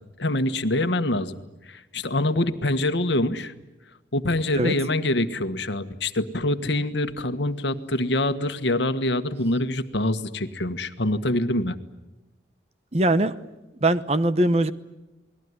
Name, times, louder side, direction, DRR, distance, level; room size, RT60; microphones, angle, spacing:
voice 1, 0.2-1.4 1.7-3.5 4.1-11.8, left 1 dB, 75° left, 9 dB, 1.5 m, -25 dB
voice 2, 12.9-13.3 13.8-14.7, right 1 dB, 35° right, 12 dB, 1.0 m, -21 dB
29.0 x 20.5 x 9.8 m, 1.0 s
head